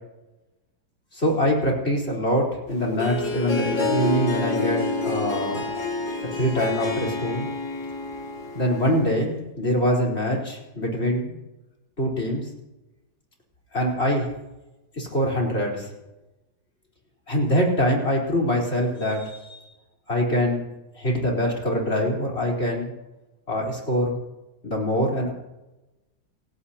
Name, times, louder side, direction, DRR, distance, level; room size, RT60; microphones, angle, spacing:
voice 1, 1.1-5.7 6.3-7.5 8.5-11.4 12.0-12.5 13.7-14.3 14.9-15.9 17.3-19.6 20.1-20.6 21.0-22.9 23.5-24.2 24.6-25.3, equal, 35° left, -1 dB, 4.5 m, -24 dB
Harp, 2.7-9.2, left 3 dB, 75° left, 3.2 m, -28 dB
29.0 x 16.0 x 2.9 m, 1.0 s
omnidirectional pair, 1.9 m